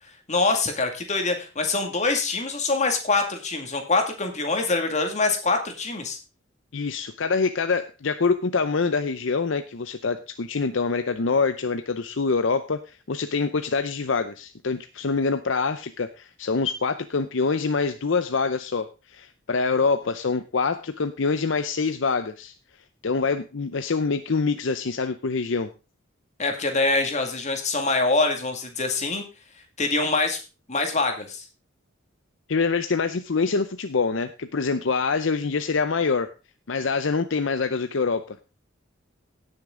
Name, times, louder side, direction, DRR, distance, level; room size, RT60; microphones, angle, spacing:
voice 1, 0.3-6.2 26.4-29.2 29.8-30.4 30.7-31.5, left 3 dB, 35° left, 5 dB, 2.1 m, -24 dB
voice 2, 6.7-22.5 23.0-25.7 32.5-36.3 36.7-38.4, left 4 dB, 65° left, 9 dB, 0.6 m, -25 dB
17.0 x 6.6 x 3.7 m, 0.31 s
head